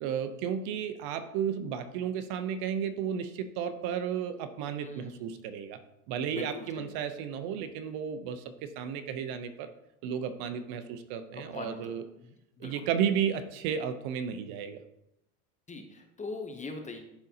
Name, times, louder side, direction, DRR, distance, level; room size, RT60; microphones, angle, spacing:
voice 1, 0.0-5.8 6.1-9.7 10.0-12.0 12.6-14.8, right 8 dB, 50° right, 10 dB, 0.7 m, -33 dB
voice 2, 4.8-5.3 6.3-7.0 11.3-12.9 15.7-17.0, left 3 dB, 15° left, 4 dB, 0.8 m, -42 dB
11.5 x 3.8 x 2.8 m, 0.82 s
supercardioid pair, 110°, 47 cm